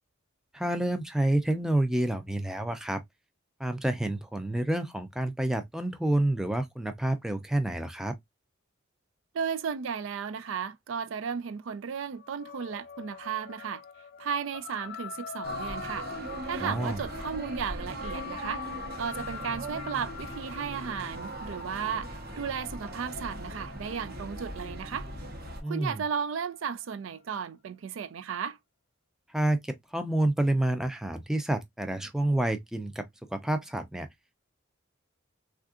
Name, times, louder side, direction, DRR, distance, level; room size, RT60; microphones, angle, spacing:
voice 1, 0.5-3.0 3.6-8.1 16.6-17.0 25.6-26.0 29.3-33.1 33.3-34.1, right 1 dB, 5° right, 0.4 m, -28 dB
voice 2, 9.3-13.8 14.2-16.1 16.4-18.6 19.0-22.1 22.4-25.1 25.7-28.6, right 6 dB, 70° right, 0.4 m, -34 dB
sound 1, 12.2-26.9, left 7 dB, 55° left, 0.5 m, -44 dB
sound 2, 15.4-25.6, right 1 dB, 50° right, 0.9 m, -40 dB
3.5 x 2.4 x 2.3 m
head